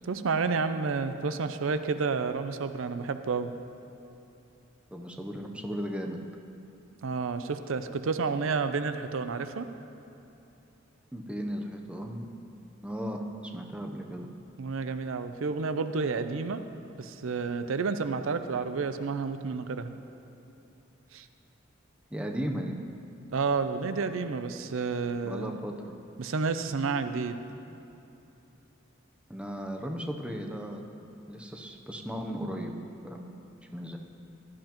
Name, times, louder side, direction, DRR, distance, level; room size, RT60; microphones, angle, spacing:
voice 1, 0.0-3.5 7.0-9.7 14.6-16.6 17.0-19.9 21.1-21.3 23.3-25.5 26.2-27.4, right 4 dB, 80° right, 10 dB, 0.5 m, -30 dB
voice 2, 4.9-6.2 11.1-12.3 12.8-14.3 22.1-22.7 25.2-25.7 29.3-30.8 31.3-33.3 33.7-34.0, equal, 5° right, 2 dB, 0.7 m, -36 dB
15.5 x 12.5 x 3.0 m, 2.9 s
head